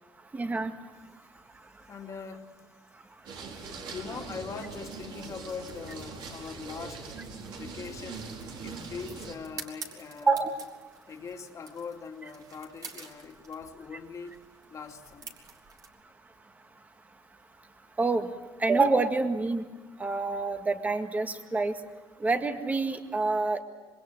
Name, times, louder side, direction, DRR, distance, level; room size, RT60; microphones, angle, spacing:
voice 1, 0.3-0.7 10.2-10.5 18.0-18.3 18.6-19.7 20.0-21.7 22.2-23.6, right 3 dB, 20° right, 7 dB, 1.9 m, -27 dB
voice 2, 1.9-2.5 3.7-7.1 7.6-8.3 8.6-10.4 11.1-14.4 14.7-15.4, left 5 dB, 40° left, 3 dB, 2.6 m, -41 dB
sound 1, 3.2-9.3, right 4 dB, 65° right, 4.7 m, -41 dB
sound 2, 4.9-15.9, right 5 dB, 45° right, 3.7 m, -50 dB
26.5 x 22.5 x 7.9 m, 1.2 s
cardioid pair, 130°, 9 cm